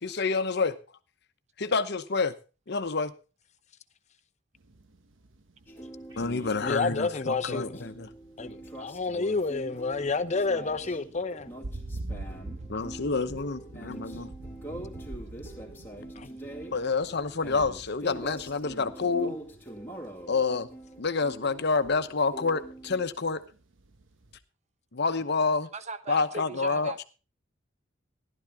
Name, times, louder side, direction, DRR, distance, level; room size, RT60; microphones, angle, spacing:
voice 1, 0.0-0.8 1.6-2.3 2.7-3.1 6.2-8.1 12.7-14.3 16.7-19.4 20.3-20.7 21.0-23.4 24.9-25.7 26.1-27.0, left 4 dB, 60° left, 1.0 m, -28 dB
sound 1, 4.5-24.4, right 2 dB, 75° right, 1.2 m, -46 dB
sound 2, 5.7-23.0, right 1 dB, 10° left, 2.4 m, -44 dB
sound 3, 6.1-7.1, equal, 20° right, 2.5 m, -54 dB
voice 2, 6.6-7.8 8.4-11.5 16.2-16.3, left 3 dB, 35° left, 0.8 m, -29 dB
voice 3, 25.7-27.0, right 4 dB, 35° right, 0.8 m, -39 dB
14.5 x 12.0 x 3.6 m
head